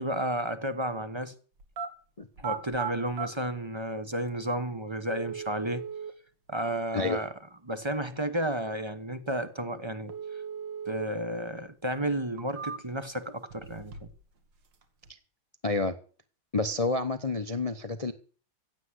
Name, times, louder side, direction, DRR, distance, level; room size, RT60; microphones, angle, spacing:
voice 1, 0.0-1.3 2.4-5.8 6.5-7.3 7.6-10.4 10.9-14.1, right 1 dB, 20° right, 0.7 m, -32 dB
sound 1, 1.6-1.9 2.3-3.3 4.3-4.4 5.1-6.1 10.1-11.1 11.5-11.6 12.2-13.1 13.5-14.2 14.5-15.1, right 6 dB, 60° right, 2.4 m, -38 dB
voice 2, 15.6-15.9 16.5-18.1, left 3 dB, 70° left, 0.3 m, -29 dB
16.0 x 8.9 x 8.1 m
omnidirectional pair, 2.3 m